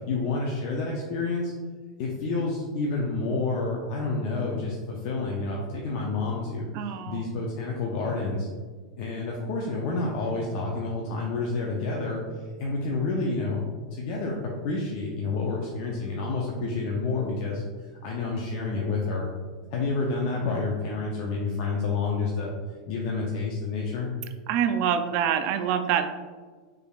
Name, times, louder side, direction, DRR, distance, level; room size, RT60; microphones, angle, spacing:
voice 1, 0.1-1.5 2.0-6.7 7.1-8.5 9.0-13.6 13.9-19.3 19.7-22.5 22.9-24.1, left 3 dB, 50° left, -2 dB, 0.5 m, -29 dB
voice 2, 6.7-7.2 24.5-26.1, right 8 dB, 50° right, 7 dB, 0.3 m, -25 dB
3.5 x 3.2 x 2.4 m, 1.5 s
hypercardioid pair, 125°, 4 cm